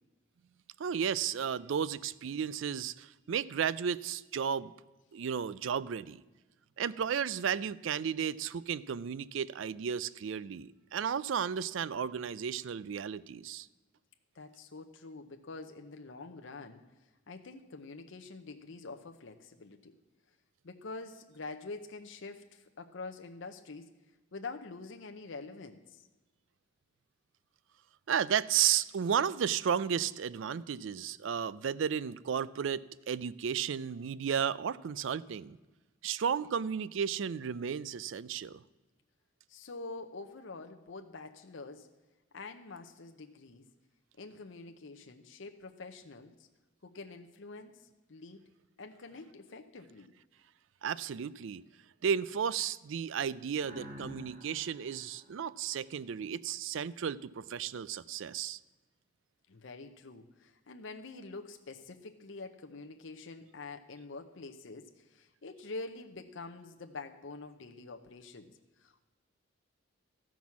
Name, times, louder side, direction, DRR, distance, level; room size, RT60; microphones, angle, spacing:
voice 1, 0.8-4.7 5.1-6.2 6.8-13.7 28.1-35.6 36.0-38.6 50.8-51.6 52.0-58.6, right 8 dB, 65° right, 19 dB, 0.4 m, -33 dB
voice 2, 14.3-20.0 20.6-23.9 24.3-26.0 39.5-41.9 42.3-43.7 44.2-46.5 46.8-48.4 48.8-50.1 59.5-68.5 68.8-69.0, left 3 dB, 65° left, 5 dB, 0.7 m, -46 dB
sound 1, 53.6-56.3, left 1 dB, 35° right, 2.0 m, -50 dB
13.5 x 6.1 x 7.1 m, 1.2 s
head